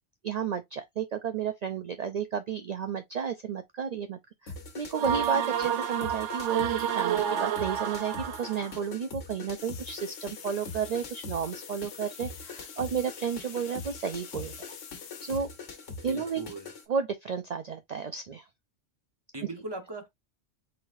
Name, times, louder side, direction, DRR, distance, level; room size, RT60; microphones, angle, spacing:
voice 1, 0.2-14.8 15.2-15.5 16.0-16.4 16.9-18.4, right 7 dB, 65° right, 0.4 m, -32 dB
sound 1, 4.5-16.9, left 3 dB, 90° left, 1.5 m, -43 dB
sound 2, 4.9-8.8, right 9 dB, 80° right, 0.9 m, -30 dB
sound 3, 9.6-16.1, left 8 dB, 70° left, 1.0 m, -47 dB
voice 2, 16.1-16.7 19.3-20.1, right 2 dB, 20° right, 1.0 m, -39 dB
4.3 x 4.0 x 2.6 m
omnidirectional pair, 1.2 m